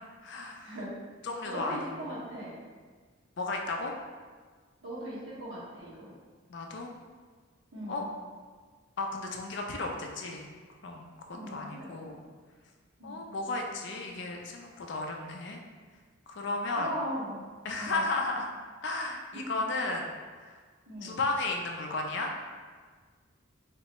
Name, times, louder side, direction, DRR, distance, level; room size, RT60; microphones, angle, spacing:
voice 1, 0.2-0.7 1.2-2.2 3.4-3.9 6.5-6.9 7.9-8.0 9.0-10.5 10.8-11.1 11.5-12.2 13.0-15.6 16.3-16.9 17.6-18.5 18.8-20.1 21.0-22.3, left 2 dB, 60° left, 2 dB, 0.4 m, -34 dB
voice 2, 1.4-2.6 4.8-6.1 7.7-8.0 11.3-12.2 13.0-13.2 16.8-17.5 17.7-18.0 20.9-21.2, equal, 65° right, -9 dB, 1.4 m, -39 dB
3.6 x 3.2 x 3.0 m, 1.5 s
head